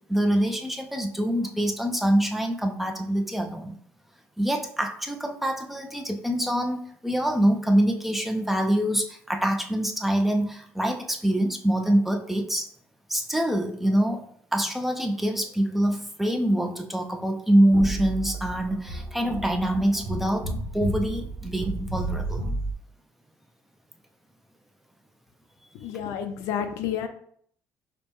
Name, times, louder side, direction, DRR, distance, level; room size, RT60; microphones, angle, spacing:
voice 1, 0.1-3.8 4.4-12.7 13.1-14.2 14.5-22.4, right 1 dB, 5° right, 4 dB, 0.4 m, -25 dB
sound 1, 17.7-22.7, right 2 dB, 90° right, 0.9 m, -32 dB
voice 2, 25.7-27.1, left 8 dB, 85° left, 7 dB, 0.4 m, -30 dB
5.2 x 2.1 x 3.0 m, 0.63 s
cardioid pair, 135°, 5 cm